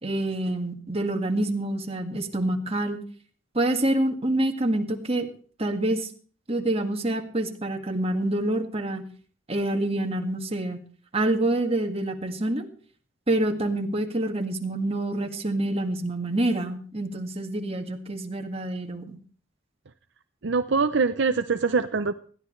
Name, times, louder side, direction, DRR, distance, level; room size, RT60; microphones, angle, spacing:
voice 1, 0.0-3.0 3.5-5.3 5.6-6.1 6.5-9.0 9.5-10.8 11.1-12.7 13.3-19.2, right 1 dB, 35° right, 4 dB, 1.9 m, -27 dB
voice 2, 20.4-22.1, right 4 dB, 70° right, 8 dB, 0.7 m, -23 dB
20.0 x 14.5 x 3.2 m, 0.43 s
head